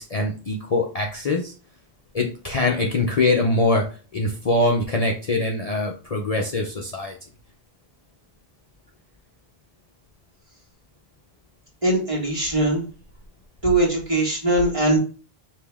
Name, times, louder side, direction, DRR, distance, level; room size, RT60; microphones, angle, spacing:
voice 1, 0.0-1.5 2.1-3.9 4.1-7.2, left 2 dB, 45° left, 0 dB, 0.6 m, -23 dB
voice 2, 11.8-12.8 13.6-15.0, right 1 dB, 35° right, -3 dB, 1.7 m, -21 dB
5.3 x 2.7 x 3.4 m, 0.36 s
omnidirectional pair, 1.0 m